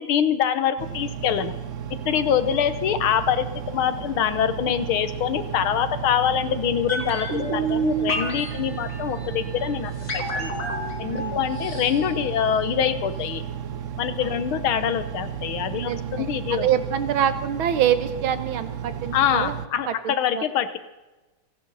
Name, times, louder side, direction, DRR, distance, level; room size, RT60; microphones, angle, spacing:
voice 1, 0.0-1.5 1.9-10.5 11.0-13.4 14.0-16.7 19.1-20.8, left 9 dB, 90° left, 12 dB, 1.9 m, -25 dB
Engine, 0.8-19.7, right 8 dB, 60° right, 0.8 m, -33 dB
sound 1, 6.9-12.9 13.2-13.3, right 2 dB, 40° left, 3.5 m, -30 dB
voice 2, 11.0-11.4 14.2-14.4 15.7-19.6 19.9-20.4, right 9 dB, 80° right, 10 dB, 2.0 m, -26 dB
30.0 x 11.5 x 4.1 m, 1.1 s
omnidirectional pair, 2.2 m